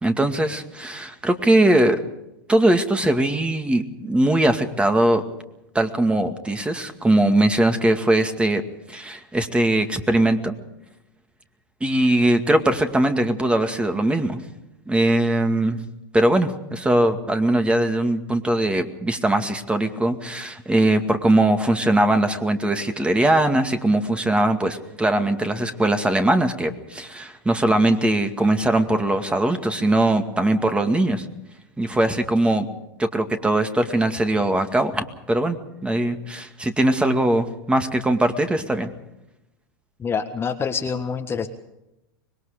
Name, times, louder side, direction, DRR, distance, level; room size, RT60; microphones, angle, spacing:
voice 1, 0.0-2.0 2.5-5.2 5.7-8.6 8.9-10.6 11.8-14.4 14.9-15.8 16.1-31.3 31.8-32.7 33.0-38.9, right 1 dB, 10° right, 7 dB, 2.2 m, -20 dB
voice 2, 40.0-41.5, left 6 dB, 20° left, 6 dB, 1.6 m, -26 dB
25.5 x 21.0 x 5.1 m, 0.89 s
hypercardioid pair, 110°, 11 cm